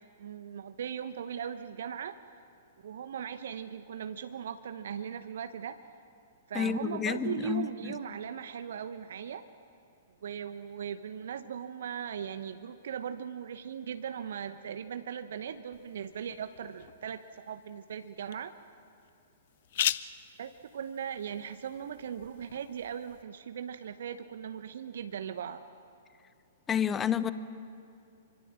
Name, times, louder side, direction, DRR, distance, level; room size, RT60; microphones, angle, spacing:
voice 1, 0.2-2.2 2.8-5.8 6.5-9.4 10.2-18.5 20.4-25.6, right 8 dB, 60° right, 10 dB, 0.9 m, -39 dB
voice 2, 6.5-8.0 26.7-27.3, left 8 dB, 15° left, 15 dB, 1.0 m, -30 dB
sound 1, 15.7-23.2, left 12 dB, 50° left, 0.7 m, -40 dB
27.0 x 24.5 x 7.4 m, 2.4 s
figure-of-eight pair, 110°, 0 cm